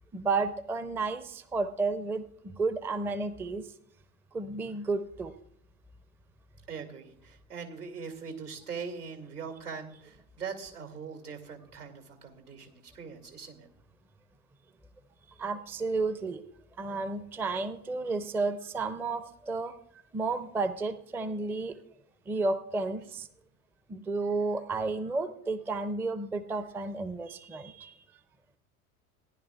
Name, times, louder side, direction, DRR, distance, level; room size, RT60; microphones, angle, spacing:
voice 1, 0.1-3.6 4.3-5.3 15.4-16.4 16.8-19.7 20.1-21.8 22.3-23.3 23.9-27.9, right 3 dB, 5° right, 13 dB, 0.4 m, -32 dB
voice 2, 6.7-13.7, right 5 dB, 85° right, 4 dB, 2.3 m, -41 dB
17.5 x 10.5 x 2.3 m, 0.72 s
figure-of-eight pair, 75°, 45 cm